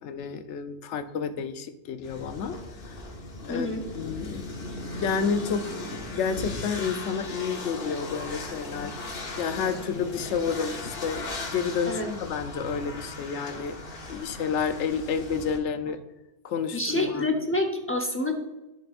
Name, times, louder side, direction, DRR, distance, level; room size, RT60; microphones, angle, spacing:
voice 1, 0.0-2.6 2.9-3.0 3.4-3.7 3.9-5.7 6.1-9.0 9.4-13.8 14.1-16.0 16.4-17.3, left 6 dB, 85° left, 10 dB, 0.9 m, -30 dB
sound 1, 2.0-15.6, left 2 dB, 55° left, 1.1 m, -38 dB
voice 2, 3.5-3.8 11.9-12.1 16.7-18.3, left 2 dB, 15° left, 3 dB, 0.7 m, -27 dB
11.0 x 5.4 x 2.5 m, 1.0 s
omnidirectional pair, 1.2 m